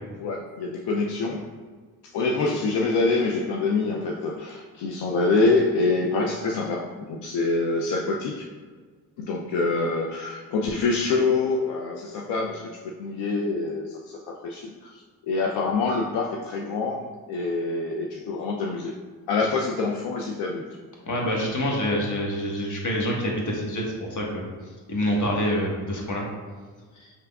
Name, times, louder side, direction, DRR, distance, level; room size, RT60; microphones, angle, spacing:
voice 1, 0.2-1.4 2.1-8.5 9.2-18.9 19.3-20.6, left 3 dB, 80° left, 0 dB, 0.5 m, -26 dB
voice 2, 21.1-24.4 24.9-26.2 27.0-27.1, equal, 50° left, -1 dB, 1.2 m, -26 dB
5.5 x 3.4 x 2.3 m, 1.5 s
cardioid pair, 70°, 40 cm